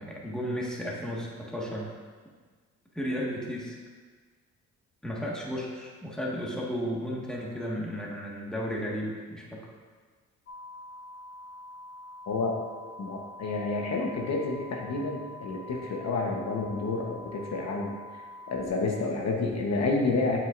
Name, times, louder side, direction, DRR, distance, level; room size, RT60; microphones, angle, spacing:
voice 1, 0.0-1.9 2.9-3.8 5.0-9.7, equal, ahead, -4 dB, 1.6 m, -34 dB
sound 1, 10.5-18.7, left 1 dB, 45° left, 0.7 m, -46 dB
voice 2, 12.3-12.6 13.0-20.4, left 3 dB, 60° left, 0 dB, 1.1 m, -30 dB
7.7 x 7.5 x 2.5 m, 1.5 s
cardioid pair, 90°, 30 cm